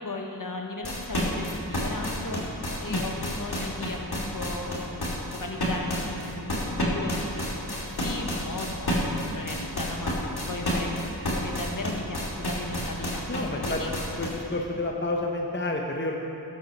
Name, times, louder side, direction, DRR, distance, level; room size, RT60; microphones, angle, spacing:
voice 1, 0.0-2.4 2.8-7.4 8.0-10.1 10.5-10.9 11.3-13.2 13.7-13.9, left 2 dB, 50° left, 2 dB, 1.3 m, -36 dB
sound 1, 0.8-14.4, equal, 70° left, 2.4 m, -29 dB
voice 2, 13.3-13.8 14.2-16.2, left 2 dB, 25° left, 1 dB, 0.9 m, -29 dB
12.5 x 8.1 x 6.0 m, 3.0 s
wide cardioid pair, 45°, 40 cm